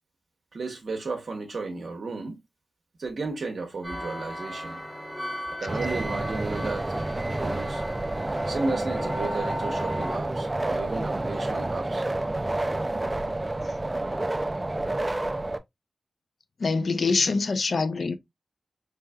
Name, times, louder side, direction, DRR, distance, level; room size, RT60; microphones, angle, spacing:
voice 1, 0.5-2.4 3.0-4.8 5.6-7.0 7.3-7.8 8.5-12.1, right 3 dB, 65° right, 0.9 m, -34 dB
sound 1, 3.8-10.2, equal, ahead, 1.0 m, -35 dB
sound 2, 5.7-15.6, right 2 dB, 20° right, 0.3 m, -29 dB
voice 2, 16.6-18.2, left 4 dB, 60° left, 0.5 m, -24 dB
4.6 x 3.4 x 2.2 m
wide cardioid pair, 125°, 0 cm